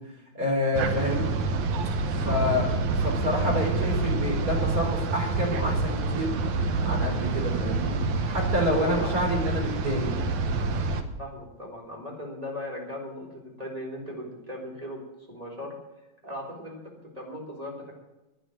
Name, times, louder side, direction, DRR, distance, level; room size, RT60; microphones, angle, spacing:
voice 1, 0.3-1.2 2.2-2.7 3.0-6.3 6.8-8.0 8.2-10.1, left 1 dB, 25° right, 0 dB, 4.4 m, -28 dB
sound 1, 0.7-11.0, right 3 dB, 75° right, 2.5 m, -27 dB
voice 2, 8.7-9.3 11.2-15.0 15.3-15.8 16.2-16.8 17.2-17.9, left 1 dB, 10° right, -2 dB, 3.7 m, -38 dB
11.5 x 9.7 x 9.0 m, 1.0 s
omnidirectional pair, 3.4 m